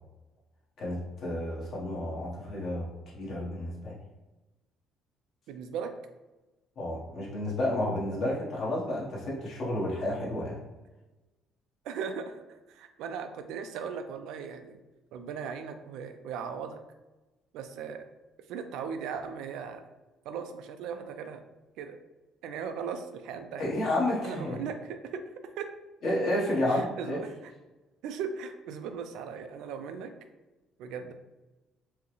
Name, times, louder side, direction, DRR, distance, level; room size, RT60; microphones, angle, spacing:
voice 1, 0.8-2.9 3.1-4.0 6.8-10.6 23.6-24.6 26.0-27.2, left 1 dB, 50° left, -5 dB, 1.1 m, -31 dB
voice 2, 5.5-5.9 8.2-8.3 11.8-12.4 12.7-14.8 15.1-16.8 17.5-18.0 18.5-19.8 20.3-21.4 21.8-22.0 22.4-23.7 24.2-25.2 25.6-25.7 26.7-27.3 28.0-30.1 30.8-31.1, right 6 dB, 80° right, 7 dB, 0.3 m, -38 dB
4.5 x 2.0 x 3.1 m, 1.1 s
cardioid pair, 155°, 0 cm